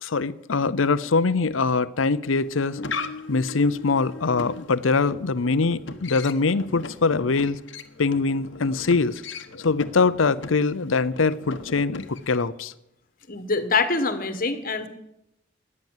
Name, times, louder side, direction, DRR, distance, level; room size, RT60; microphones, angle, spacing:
voice 1, 0.0-2.8 3.3-7.6 8.0-9.2 9.6-12.7, left 4 dB, 90° left, 16 dB, 0.7 m, -23 dB
sound 1, 2.4-12.5, left 3 dB, 65° left, 1.1 m, -38 dB
voice 2, 13.3-14.9, left 4 dB, 45° left, 10 dB, 1.6 m, -24 dB
17.5 x 11.0 x 7.4 m, 0.85 s
head